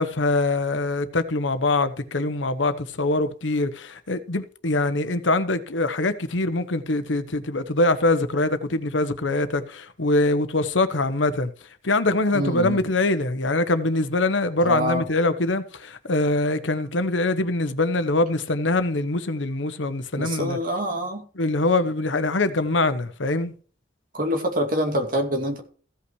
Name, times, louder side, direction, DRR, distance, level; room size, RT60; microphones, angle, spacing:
voice 1, 0.0-11.5 11.8-20.6 21.3-23.5, left 2 dB, 85° left, 1.1 m, -23 dB
voice 2, 12.3-12.8 14.6-15.0 20.2-21.2 24.1-25.6, equal, 50° right, 2.4 m, -25 dB
15.5 x 5.8 x 4.8 m
head